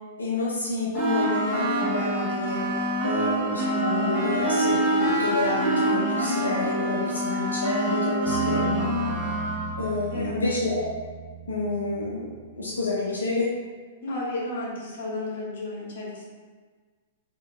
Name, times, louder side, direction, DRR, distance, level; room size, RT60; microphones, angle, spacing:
voice 1, 0.2-2.6 3.0-8.9 9.7-10.9 11.5-13.5, left 2 dB, 90° left, -4 dB, 0.5 m, -29 dB
sound 1, 0.9-9.8, right 1 dB, 30° right, 1.1 m, -26 dB
Bass guitar, 8.3-12.7, right 4 dB, 60° right, 1.4 m, -36 dB
voice 2, 14.0-16.2, left 2 dB, 65° left, -4 dB, 1.2 m, -33 dB
4.3 x 2.7 x 2.2 m, 1.5 s
hypercardioid pair, 115°, 0 cm